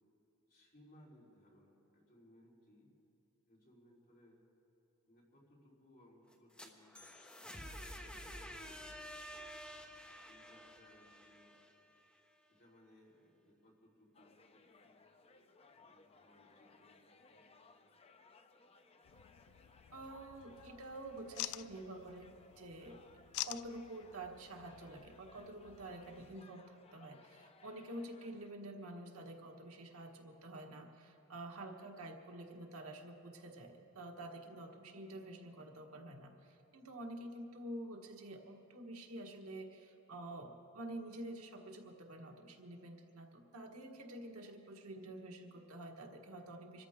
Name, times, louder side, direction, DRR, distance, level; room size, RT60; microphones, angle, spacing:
voice 1, 0.5-2.9 3.5-4.4 5.1-7.0 7.7-9.7 10.3-11.9 12.5-15.0 15.7-17.8, left 1 dB, 45° left, -5 dB, 3.8 m, -66 dB
sound 1, 6.3-12.2, equal, 5° left, 1.1 m, -50 dB
sound 2, 14.1-28.5, left 3 dB, 25° left, 0.6 m, -64 dB
sound 3, 19.0-26.4, left 14 dB, 85° left, 0.4 m, -49 dB
voice 2, 19.9-23.0 23.4-46.9, right 1 dB, 80° right, 2 dB, 1.5 m, -48 dB
25.5 x 13.5 x 3.7 m, 2.8 s
head